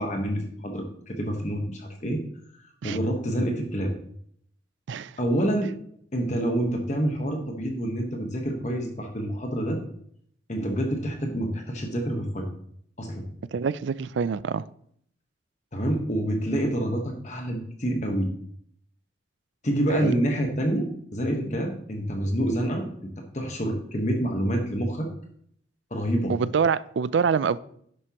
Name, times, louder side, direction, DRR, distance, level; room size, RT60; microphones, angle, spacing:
voice 1, 0.0-2.2 2.8-3.9 5.2-5.7 6.1-9.8 10.5-12.5 13.0-13.2 15.7-18.3 19.6-22.9 23.3-25.1 25.9-26.3, right 1 dB, 35° left, 3 dB, 1.2 m, -27 dB
voice 2, 4.9-5.2 13.5-14.7 19.9-20.1 26.3-27.6, right 6 dB, 70° right, 18 dB, 0.4 m, -25 dB
10.5 x 7.7 x 3.0 m, 0.66 s
head